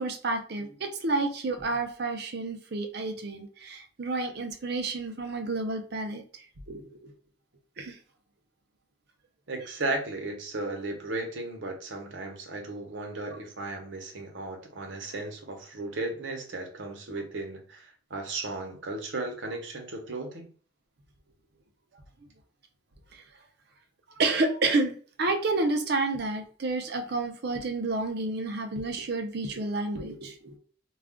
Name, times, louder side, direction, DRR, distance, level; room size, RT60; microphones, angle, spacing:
voice 1, 0.0-6.2 6.7-7.1 7.8-8.0 23.1-23.2 24.2-30.6, right 3 dB, 60° right, 5 dB, 0.6 m, -30 dB
voice 2, 9.5-20.5, right 2 dB, 90° right, 2 dB, 0.9 m, -35 dB
2.4 x 2.3 x 3.5 m, 0.42 s
head